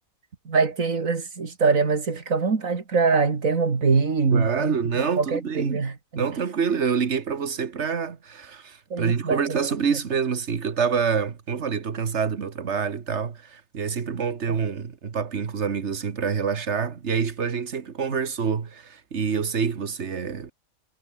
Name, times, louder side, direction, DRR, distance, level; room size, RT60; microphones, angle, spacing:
voice 1, 0.5-6.3 8.9-9.6 14.5-14.6, right 4 dB, 70° right, 2.8 m, -23 dB
voice 2, 4.3-5.8 6.2-20.5, right 6 dB, 55° right, 1.7 m, -27 dB
omnidirectional pair, 1.4 m